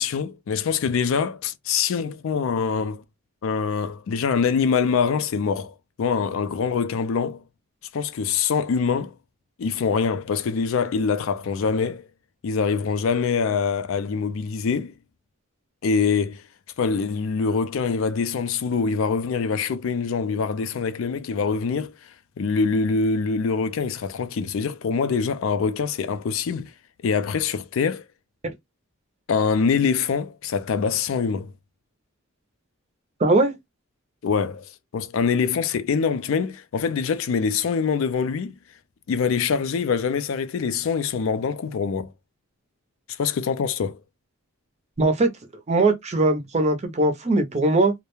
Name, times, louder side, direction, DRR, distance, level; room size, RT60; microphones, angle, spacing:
voice 1, 0.0-3.0 3.4-7.4 7.9-9.1 9.6-12.1 12.4-14.9 15.8-16.4 16.8-21.9 22.4-26.7 27.0-28.0 29.3-31.5 34.2-34.6 34.9-38.5 39.1-42.1 43.1-44.0, left 5 dB, 60° left, 0.3 m, -24 dB
voice 2, 33.2-33.5 45.0-45.3 45.7-47.9, right 2 dB, 30° right, 0.5 m, -20 dB
2.3 x 2.1 x 2.9 m
head